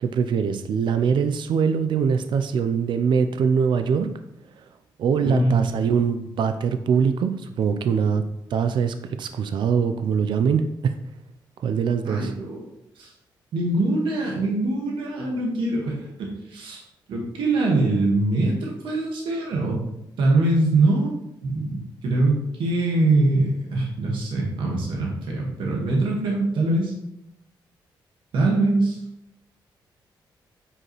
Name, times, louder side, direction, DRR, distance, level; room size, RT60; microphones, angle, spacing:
voice 1, 0.0-4.1 5.0-8.2 8.5-11.0 11.6-12.3, right 6 dB, 70° right, 9 dB, 0.5 m, -23 dB
voice 2, 5.2-5.6 12.0-12.6 12.9-13.1 13.5-16.8 17.1-19.8 20.2-21.1 21.4-26.9 28.3-29.0, right 2 dB, 90° right, -2 dB, 1.6 m, -23 dB
8.7 x 4.8 x 3.1 m, 0.82 s
cardioid pair, 85°, 8 cm